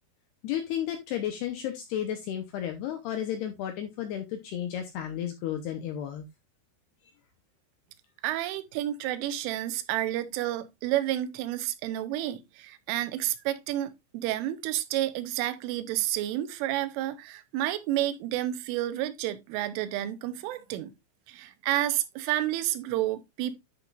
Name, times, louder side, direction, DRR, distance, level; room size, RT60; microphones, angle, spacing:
voice 1, 0.4-6.3, left 10 dB, 75° left, 2.5 m, -33 dB
voice 2, 8.2-20.9 21.3-23.6, right 13 dB, 85° right, 3.2 m, -30 dB
11.5 x 6.0 x 2.4 m
omnidirectional pair, 5.7 m